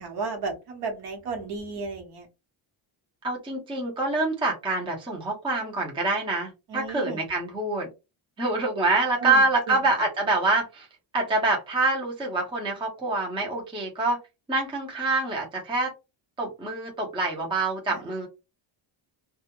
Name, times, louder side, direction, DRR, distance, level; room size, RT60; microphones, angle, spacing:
voice 1, 0.0-2.3 6.7-7.2 9.2-9.9 17.9-18.2, right 4 dB, 55° right, 2 dB, 1.0 m, -34 dB
voice 2, 3.2-7.9 8.4-10.9 11.1-14.2 14.5-15.9 16.4-18.3, right 2 dB, 10° right, -1 dB, 0.6 m, -26 dB
2.3 x 2.0 x 2.9 m, 0.26 s
cardioid pair, 145°, 47 cm